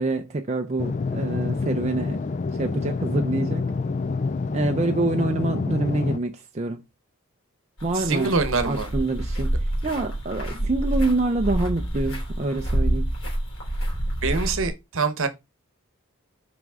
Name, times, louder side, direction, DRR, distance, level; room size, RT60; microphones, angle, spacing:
voice 1, 0.0-2.2 2.6-3.7 4.5-6.8 7.8-8.3 8.7-13.1, right 2 dB, 30° right, 0.5 m, -26 dB
sound 1, 0.8-6.2, left 4 dB, 35° left, 0.3 m, -27 dB
sound 2, 7.8-14.7, right 1 dB, 60° left, 3.5 m, -27 dB
voice 2, 7.9-8.9 14.2-15.3, right 4 dB, 60° right, 1.0 m, -24 dB
5.9 x 5.1 x 3.6 m
head